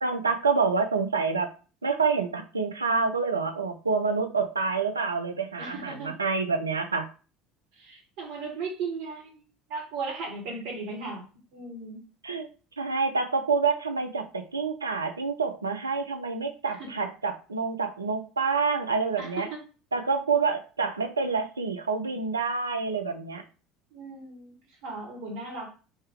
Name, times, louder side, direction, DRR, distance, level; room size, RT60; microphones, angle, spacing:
voice 1, 0.0-1.5 1.8-7.1 12.2-12.5 12.8-19.5 19.9-23.4, right 4 dB, 80° right, 6 dB, 0.3 m, -27 dB
voice 2, 5.6-6.1 7.7-9.4 9.7-12.0 16.7-16.9 19.2-19.6 23.9-25.7, right 4 dB, 55° right, 0 dB, 1.1 m, -37 dB
3.1 x 2.1 x 3.4 m, 0.35 s
figure-of-eight pair, 65°, 0 cm